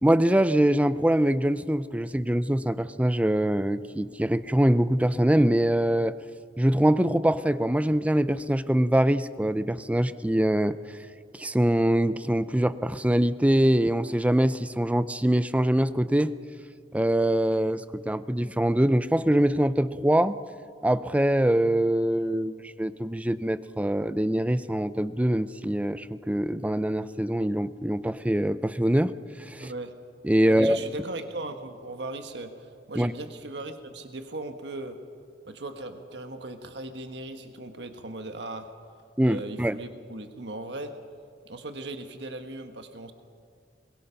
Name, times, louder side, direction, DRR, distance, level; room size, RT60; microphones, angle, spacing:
voice 1, 0.0-6.1 6.6-10.8 11.3-16.3 16.9-20.4 20.8-29.1 29.4-29.7 30.2-30.8 32.9-33.1 39.2-39.8, right 1 dB, 10° right, 14 dB, 0.5 m, -23 dB
voice 2, 29.6-29.9 30.4-35.0 35.5-38.7 39.2-40.9 41.4-43.1, right 2 dB, 70° right, 7 dB, 1.4 m, -38 dB
22.5 x 21.5 x 5.7 m, 2.1 s
head